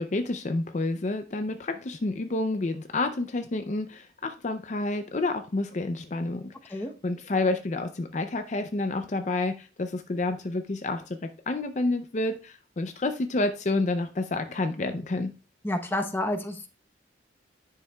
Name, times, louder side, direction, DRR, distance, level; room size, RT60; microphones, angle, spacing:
voice 1, 0.0-15.3, left 2 dB, 40° left, 7 dB, 0.5 m, -29 dB
voice 2, 15.6-16.7, left 1 dB, 10° left, 5 dB, 0.8 m, -29 dB
10.0 x 6.6 x 2.2 m, 0.34 s
head